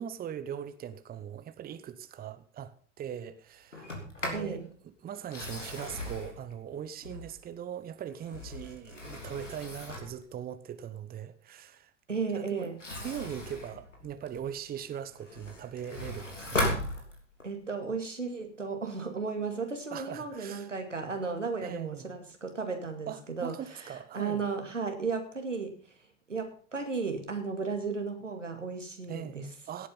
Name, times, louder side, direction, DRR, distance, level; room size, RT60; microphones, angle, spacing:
voice 1, 0.0-3.9 4.2-11.9 12.3-12.7 13.0-16.7 19.9-20.7 21.6-22.2 23.1-24.5 29.1-29.9, right 9 dB, 25° right, 1.0 m, -40 dB
Sliding door, 3.7-4.5 5.2-7.5 8.1-10.2 12.6-14.6 15.0-17.5, left 1 dB, 85° left, 3.4 m, -37 dB
voice 2, 4.3-4.7 12.1-12.7 17.4-25.8 26.3-29.5, right 4 dB, 85° right, 2.4 m, -34 dB
17.0 x 8.7 x 5.6 m
figure-of-eight pair, 75°, 36 cm